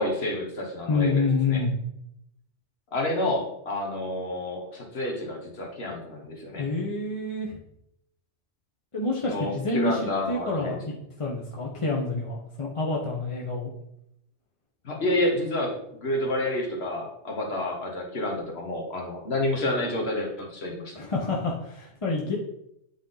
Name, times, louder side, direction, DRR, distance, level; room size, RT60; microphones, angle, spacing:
voice 1, 0.0-1.6 2.9-6.7 9.2-10.8 14.8-21.0, left 1 dB, 60° left, 0 dB, 1.6 m, -29 dB
voice 2, 0.9-1.7 6.6-7.6 8.9-10.0 10.3-13.7 20.9-22.4, left 3 dB, 30° left, -2 dB, 0.8 m, -28 dB
8.6 x 3.8 x 3.9 m, 0.79 s
omnidirectional pair, 1.2 m